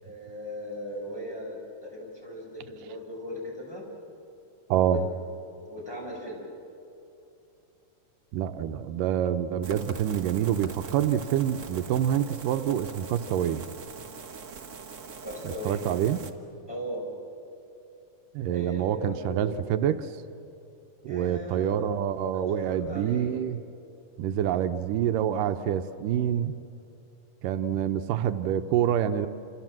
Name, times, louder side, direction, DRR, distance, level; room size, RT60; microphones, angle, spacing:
voice 1, 0.0-3.8 4.8-5.0 5.7-6.4 15.2-15.8 16.7-17.1 18.5-19.5 21.0-21.8 22.3-23.3, equal, 5° left, -3 dB, 5.9 m, -38 dB
voice 2, 4.7-5.0 8.3-13.6 15.4-16.2 18.3-20.2 21.0-23.6 24.2-26.6 27.4-29.3, right 10 dB, 85° right, 8 dB, 2.4 m, -27 dB
sound 1, 9.6-16.3, right 5 dB, 65° right, 0.7 m, -42 dB
28.0 x 28.0 x 7.5 m, 2.8 s
omnidirectional pair, 3.8 m